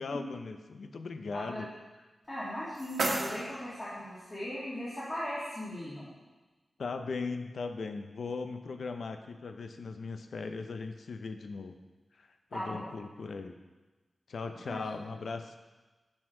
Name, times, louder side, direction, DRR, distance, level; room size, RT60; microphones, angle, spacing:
voice 1, 0.0-1.7 6.8-11.8 12.2-13.6 14.3-15.6, left 4 dB, 70° left, 7 dB, 0.6 m, -38 dB
sound 1, 2.2-4.2, right 2 dB, 65° right, 1.4 m, -36 dB
voice 2, 2.3-6.0 12.5-12.8 14.7-14.8, equal, 25° left, -11 dB, 2.2 m, -38 dB
10.5 x 6.3 x 3.7 m, 1.2 s
wide cardioid pair, 160°, 0 cm